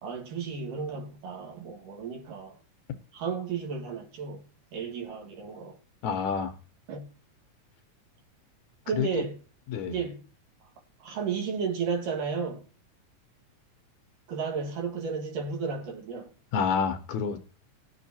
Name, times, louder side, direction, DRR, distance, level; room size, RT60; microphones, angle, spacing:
voice 1, 0.0-2.6 3.1-5.8 6.9-7.1 8.9-9.4 9.9-10.3 11.0-12.6 14.3-16.3, right 5 dB, 85° right, 3.3 m, -33 dB
voice 2, 6.0-6.5 8.9-9.1 9.7-10.0 16.5-17.4, left 6 dB, 70° left, 2.0 m, -28 dB
19.0 x 7.3 x 2.7 m
omnidirectional pair, 3.7 m